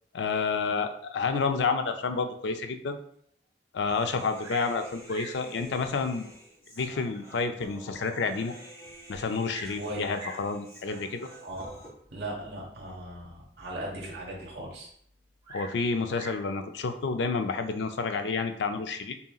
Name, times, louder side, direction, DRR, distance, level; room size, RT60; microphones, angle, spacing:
voice 1, 0.1-3.0 3.7-6.3 6.8-8.5 9.1-11.3 15.5-19.1, left 4 dB, 75° left, 8 dB, 0.4 m, -29 dB
Human voice, 3.9-11.9, right 1 dB, 15° left, 1.4 m, -49 dB
Bird vocalization bird call bird song, 4.4-4.8 5.1-5.4 6.3-6.4 7.0-7.1 7.6-7.7 7.9-8.0 9.1-9.8 10.1-10.5 11.5-11.8 15.4-16.5 17.6-18.0, right 1 dB, 20° right, 1.1 m, -44 dB
voice 2, 9.6-10.1 11.4-11.8 12.1-14.9, right 1 dB, 60° right, -3 dB, 1.2 m, -38 dB
5.4 x 2.8 x 2.3 m, 0.65 s
head